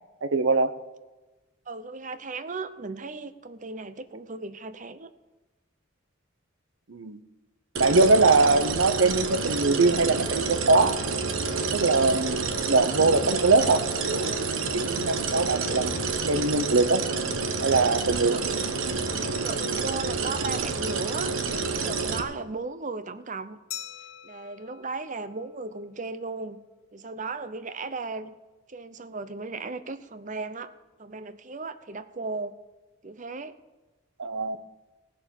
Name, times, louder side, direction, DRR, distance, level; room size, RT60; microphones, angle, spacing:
voice 1, 0.2-0.7 6.9-7.2 7.8-11.0 11.7-12.4 12.7-15.9 16.3-17.1 17.6-18.4 34.2-34.6, right 3 dB, 75° right, 12 dB, 0.8 m, -22 dB
voice 2, 1.7-5.1 18.3-18.4 19.4-21.3 21.6-23.6 24.2-26.6 26.9-28.3 28.7-30.7 31.0-32.5 33.0-33.5, right 3 dB, 40° right, 12 dB, 0.7 m, -36 dB
sound 1, 7.8-22.2, right 4 dB, 90° right, 1.2 m, -29 dB
Glass, 23.7-26.2, left 11 dB, 85° left, 1.1 m, -43 dB
18.0 x 6.8 x 7.2 m, 1.1 s
head